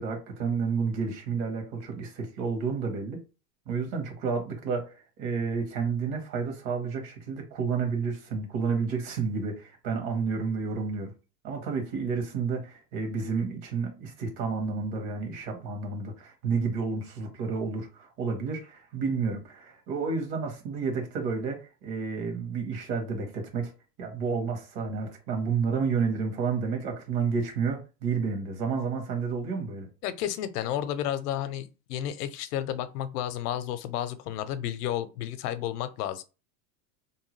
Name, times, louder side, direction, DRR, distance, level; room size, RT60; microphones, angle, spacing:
voice 1, 0.0-3.2 3.7-4.9 5.2-11.1 11.4-23.7 24.0-29.9, right 5 dB, 50° right, 1.3 m, -30 dB
voice 2, 30.0-36.2, left 11 dB, 70° left, 0.6 m, -32 dB
2.8 x 2.2 x 3.1 m
supercardioid pair, 130°, 48 cm